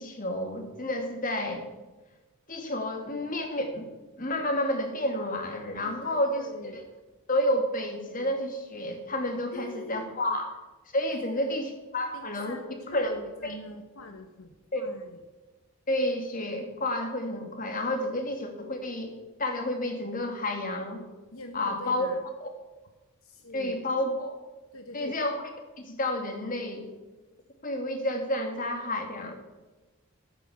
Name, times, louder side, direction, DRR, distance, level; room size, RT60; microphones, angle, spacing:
voice 1, 0.0-1.6 2.5-3.8 4.2-6.5 6.7-6.8 7.3-10.5 10.9-12.6 12.9-13.1 13.4-13.6 14.7-14.9 15.9-19.1 19.4-21.0 21.5-22.1 22.4-22.5 23.5-24.4 24.9-25.4 25.8-26.9 27.6-29.3, left 1 dB, 35° left, 4 dB, 2.4 m, -30 dB
voice 2, 5.8-6.9 9.5-10.0 11.1-11.6 12.1-15.2 21.3-22.2 23.2-23.8 24.7-25.2, left 2 dB, 70° left, 6 dB, 1.1 m, -44 dB
14.0 x 9.1 x 7.3 m, 1.1 s
head